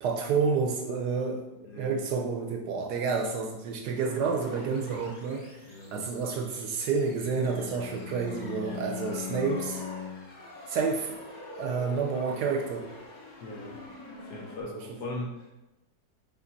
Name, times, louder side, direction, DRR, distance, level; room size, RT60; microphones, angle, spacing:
voice 1, 0.0-1.4 1.8-5.6 5.9-9.8 10.7-11.2 11.6-12.9 14.7-15.0, right 5 dB, 70° right, 4 dB, 1.1 m, -29 dB
voice 2, 1.6-2.0 5.6-6.0 13.4-13.8 14.3-15.5, left 2 dB, 65° left, -2 dB, 1.3 m, -39 dB
sound 1, 4.0-14.6, left 1 dB, 35° left, 0.7 m, -47 dB
Bowed string instrument, 7.2-10.4, left 7 dB, 90° left, 1.6 m, -39 dB
5.7 x 4.4 x 4.0 m, 1.0 s
omnidirectional pair, 2.0 m